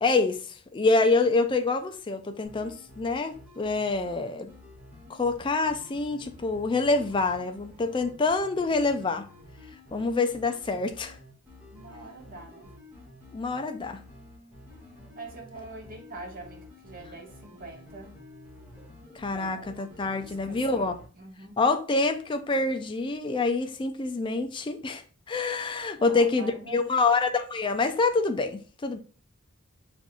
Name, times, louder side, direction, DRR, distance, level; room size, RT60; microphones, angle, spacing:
voice 1, 0.0-4.5 5.1-9.3 9.9-11.2 13.3-14.0 19.1-21.0 21.6-25.0 25.3-29.0, left 3 dB, 25° left, 0.4 m, -26 dB
sound 1, 2.4-21.1, left 2 dB, 10° right, 1.5 m, -50 dB
voice 2, 11.7-12.7 15.1-18.1 19.3-19.8 20.1-21.6 26.0-26.9, right 2 dB, 45° right, 0.9 m, -44 dB
6.1 x 2.5 x 2.5 m
head